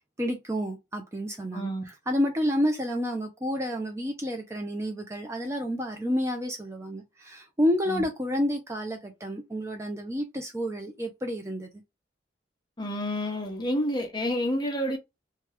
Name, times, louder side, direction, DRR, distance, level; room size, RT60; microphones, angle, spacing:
voice 1, 0.2-11.7, equal, 15° right, 0.4 m, -30 dB
voice 2, 1.5-1.8 7.9-8.0 12.8-15.0, equal, 25° left, 0.7 m, -29 dB
2.8 x 2.3 x 3.2 m
head